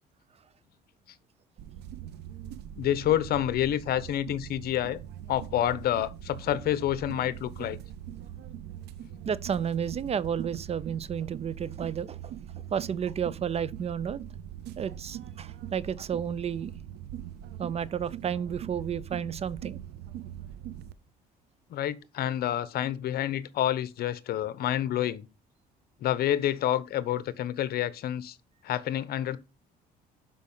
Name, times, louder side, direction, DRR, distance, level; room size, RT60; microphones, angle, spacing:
sound 1, 1.6-20.9, right 11 dB, 80° right, 0.9 m, -42 dB
voice 1, 2.8-5.0 5.3-7.8 21.7-25.3 26.0-28.4 28.6-29.4, left 12 dB, 65° left, 1.1 m, -28 dB
voice 2, 9.2-12.3 12.7-14.2 14.8-16.7 17.6-19.8, right 8 dB, 35° right, 0.6 m, -32 dB
11.5 x 5.4 x 5.7 m
cardioid pair, 110°, 17 cm